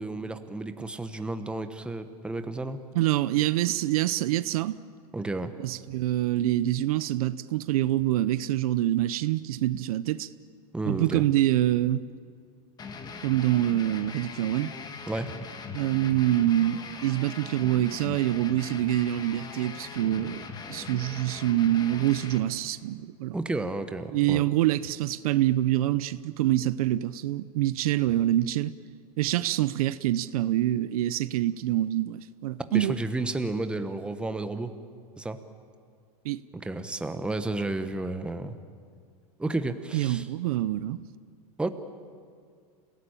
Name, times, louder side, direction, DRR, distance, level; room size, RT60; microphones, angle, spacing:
voice 1, 0.0-2.8 5.1-5.5 10.7-11.2 15.1-15.3 23.3-24.4 32.7-34.8 35.2-35.4 36.5-38.5 39.4-40.3 41.6-41.7, right 2 dB, 5° right, 1.1 m, -32 dB
voice 2, 2.9-4.8 5.6-10.3 10.8-12.0 13.2-14.7 15.7-23.3 24.1-28.7 29.2-33.0 36.2-36.4 39.9-41.0, right 14 dB, 70° right, 0.8 m, -26 dB
sound 1, 12.8-22.4, left 5 dB, 20° left, 1.8 m, -40 dB
27.5 x 17.5 x 9.0 m
supercardioid pair, 140°, 20 cm